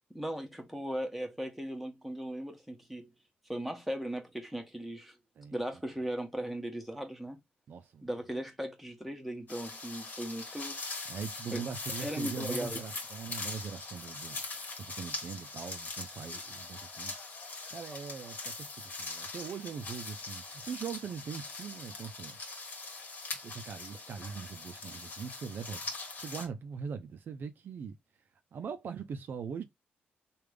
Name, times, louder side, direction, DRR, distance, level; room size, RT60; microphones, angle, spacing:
voice 1, 0.1-3.1 3.5-5.2 5.5-7.4 8.0-10.8 11.5-11.6 12.0-12.8, right 1 dB, ahead, 1.1 m, -38 dB
voice 2, 7.7-8.1 11.1-17.1 17.7-18.7 19.0-22.4 23.4-25.8 26.2-28.0 28.5-29.7, right 6 dB, 65° right, 0.5 m, -41 dB
sound 1, 9.5-26.5, left 3 dB, 55° left, 1.3 m, -42 dB
3.3 x 2.4 x 3.3 m
cardioid pair, 80°, 4 cm